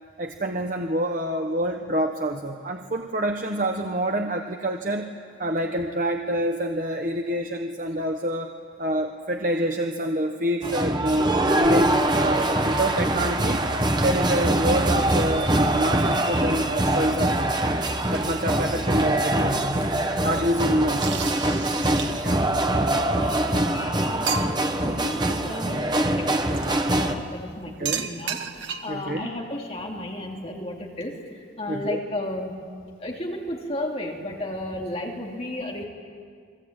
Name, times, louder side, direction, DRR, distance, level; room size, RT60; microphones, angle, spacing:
voice 1, 0.2-5.1 5.4-8.5 8.8-13.6 14.0-17.5 18.1-19.9 20.2-21.1 22.2-22.5 27.8-28.1 28.9-29.3 31.7-32.0, right 1 dB, 45° right, 3 dB, 1.2 m, -27 dB
sound 1, 10.6-27.1, right 1 dB, 25° right, 1.3 m, -23 dB
sound 2, 21.0-22.4 23.4-23.5 23.8-23.9 24.3-24.8 26.5-26.8 27.8-29.0, right 6 dB, 75° right, 1.8 m, -32 dB
voice 2, 22.9-24.4 24.8-32.6 33.0-35.8, left 1 dB, 30° left, -1 dB, 3.1 m, -34 dB
30.0 x 21.5 x 8.9 m, 2.1 s
head